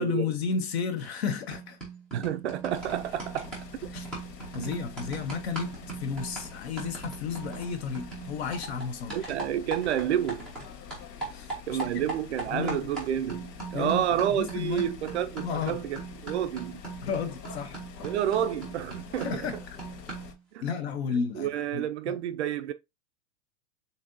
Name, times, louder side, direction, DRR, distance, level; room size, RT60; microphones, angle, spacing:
voice 1, 0.0-1.8 3.9-4.1 4.5-5.7 6.0-9.3 11.3-12.1 12.5-12.9 13.7-14.9 15.4-15.8 17.0-17.8 19.2-19.6 20.6-22.2, left 6 dB, 40° left, 0.7 m, -33 dB
sound 1, 1.0-1.2 1.5-10.7 10.9-20.4, right 4 dB, ahead, 0.5 m, -40 dB
voice 2, 2.1-3.5 4.6-4.7 9.1-10.5 11.7-16.8 18.0-19.5 20.5-20.6 21.4-22.7, right 10 dB, 45° right, 0.5 m, -29 dB
sound 2, 2.7-20.3, left 7 dB, 80° left, 1.5 m, -46 dB
7.1 x 2.8 x 2.6 m
supercardioid pair, 165°, 48 cm